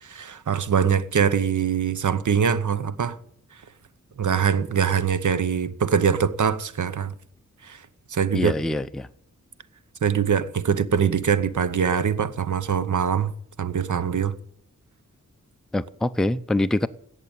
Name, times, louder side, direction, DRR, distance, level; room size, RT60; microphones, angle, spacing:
voice 1, 0.0-3.2 4.2-7.1 7.6-7.8 8.1-8.5 10.0-13.3 13.6-14.3, right 7 dB, 75° right, 0.9 m, -23 dB
voice 2, 8.3-9.1 15.7-16.9, left 1 dB, ahead, 0.5 m, -24 dB
16.5 x 6.8 x 8.9 m
wide cardioid pair, 100°, 31 cm